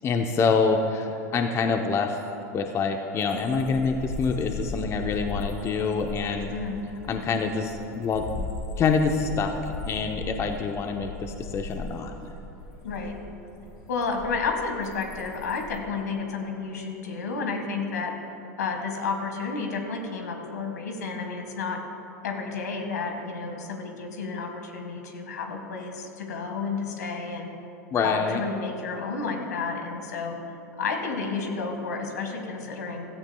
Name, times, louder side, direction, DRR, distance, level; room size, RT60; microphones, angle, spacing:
voice 1, 0.0-2.2 2.5-6.5 7.1-8.5 8.8-9.5 9.9-12.1 27.9-28.4, left 4 dB, 30° left, 4 dB, 0.8 m, -26 dB
sound 1, 3.2-15.8, left 3 dB, 50° left, 2.4 m, -38 dB
voice 2, 12.8-13.1 13.9-18.1 18.6-21.8 22.2-27.5 28.0-30.4 30.8-33.1, left 4 dB, 80° left, 3 dB, 1.7 m, -31 dB
16.0 x 14.5 x 2.3 m, 2.8 s
hypercardioid pair, 95°, 9 cm